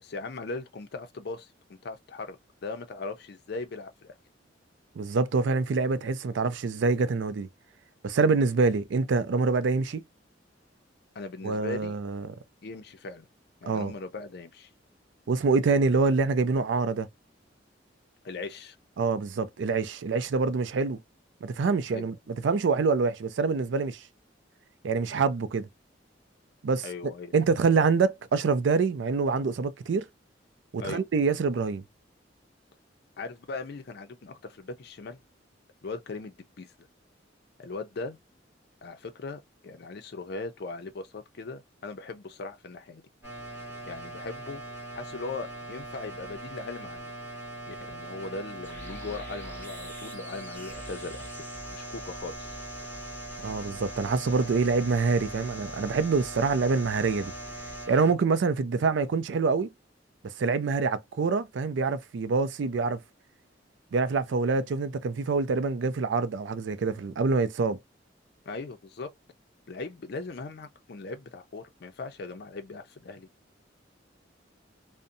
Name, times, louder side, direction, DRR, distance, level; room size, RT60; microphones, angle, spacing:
voice 1, 0.0-4.1 11.1-12.0 12.6-13.3 13.6-14.7 18.2-18.8 21.9-22.1 26.8-27.3 30.8-31.0 33.2-35.2 35.8-36.7 37.6-38.2 38.8-43.0 43.9-44.6 44.9-47.1 47.7-51.3 51.7-52.5 68.5-69.1 69.7-73.3, left 3 dB, 60° left, 0.5 m, -39 dB
voice 2, 5.0-7.5 8.0-10.0 11.4-12.3 13.7-13.9 15.3-17.1 19.0-21.0 21.4-24.0 24.8-25.7 26.6-26.9 27.3-30.1 30.7-31.8 53.4-57.3 57.9-59.7 60.2-63.0 63.9-67.8, right 4 dB, 75° right, 0.4 m, -26 dB
sound 1, 43.2-58.1, right 2 dB, 10° right, 1.4 m, -41 dB
sound 2, 48.6-57.9, left 1 dB, 10° left, 1.1 m, -45 dB
2.6 x 2.1 x 2.5 m
head